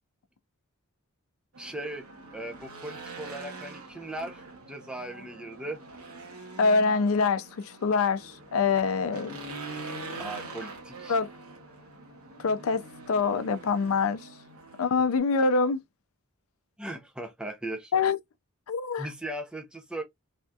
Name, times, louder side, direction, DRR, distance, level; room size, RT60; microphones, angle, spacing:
Race car auto racing / Engine, 1.5-15.2, right 3 dB, 90° right, 1.1 m, -44 dB
voice 1, 1.6-2.1 2.3-5.8 10.2-11.2 16.8-17.9 19.0-20.0, right 1 dB, 5° right, 0.5 m, -38 dB
voice 2, 6.6-9.3 11.1-11.3 12.4-12.8 13.1-14.3 14.8-15.8 17.9-18.2 18.7-19.1, left 4 dB, 80° left, 0.4 m, -25 dB
3.3 x 2.3 x 2.6 m
head